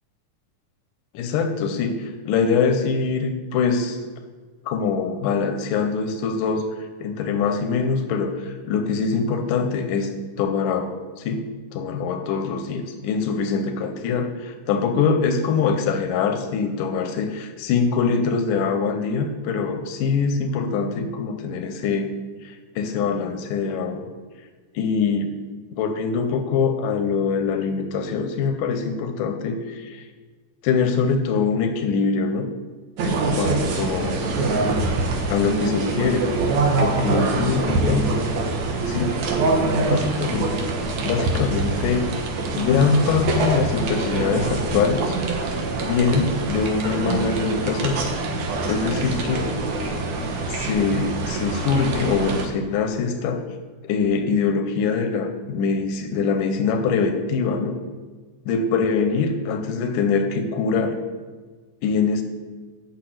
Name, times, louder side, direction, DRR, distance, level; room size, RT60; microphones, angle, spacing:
voice 1, 1.1-4.0 4.7-10.1 10.4-10.9 11.2-11.5 11.7-22.1 22.4-24.0 24.8-25.3 25.7-30.1 30.6-32.5 33.0-34.3 35.3-36.2 36.8-38.2 38.9-39.2 39.8-40.5 41.0-42.1 42.6-45.2 45.8-48.0 48.7-49.5 50.5-53.4 53.8-57.8 58.5-61.0 61.8-62.2, left 5 dB, 90° left, 6 dB, 2.4 m, -23 dB
sound 1, 33.0-52.5, right 3 dB, 65° right, 2.4 m, -24 dB
8.1 x 6.3 x 7.9 m, 1.4 s
omnidirectional pair, 3.7 m